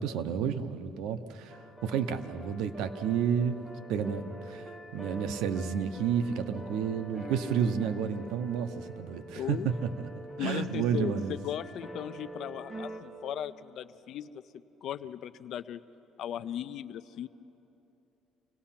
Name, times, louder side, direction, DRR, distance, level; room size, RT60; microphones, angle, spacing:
voice 1, 0.0-3.6 3.9-10.1 10.4-11.4, right 7 dB, 90° right, 10 dB, 0.8 m, -31 dB
sound 1, 1.5-13.0, right 1 dB, 5° right, 1.3 m, -45 dB
voice 2, 9.4-9.7 10.4-14.3 14.8-15.8 16.2-17.3, left 10 dB, 55° left, 13 dB, 0.5 m, -37 dB
26.5 x 17.5 x 5.8 m, 3.0 s
cardioid pair, 170°, 0 cm